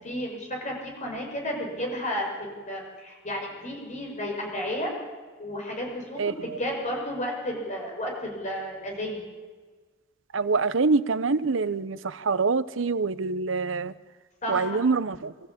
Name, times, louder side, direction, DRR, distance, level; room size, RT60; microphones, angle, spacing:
voice 1, 0.0-4.9 5.4-9.2 14.4-14.8, equal, 40° left, 0 dB, 5.9 m, -32 dB
voice 2, 10.3-13.9 14.5-15.3, right 4 dB, 75° right, 16 dB, 0.7 m, -25 dB
23.5 x 13.5 x 8.6 m, 1.4 s
head